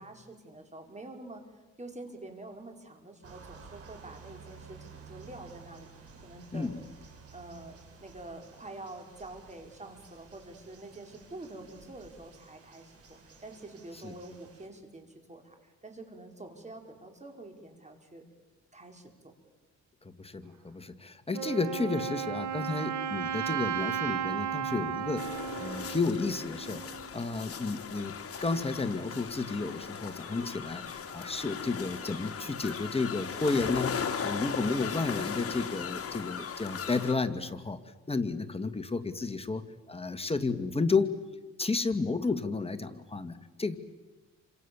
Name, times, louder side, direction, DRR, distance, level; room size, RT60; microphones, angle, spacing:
voice 1, 0.0-1.4 1.8-5.9 6.2-6.8 7.3-18.2 18.7-19.1, right 2 dB, 25° right, 4 dB, 5.3 m, -47 dB
sound 1, 3.2-14.7, right 5 dB, 50° right, 7.1 m, -53 dB
voice 2, 20.0-28.1 28.4-37.8 38.1-41.1 41.6-43.8, left 3 dB, 20° left, 9 dB, 1.9 m, -32 dB
Wind instrument woodwind instrument, 21.3-27.1, right 9 dB, 75° right, 2.1 m, -34 dB
sound 2, 25.2-37.1, left 6 dB, 50° left, 3.0 m, -38 dB
29.5 x 26.5 x 7.2 m, 1.2 s
cardioid pair, 90°, 30 cm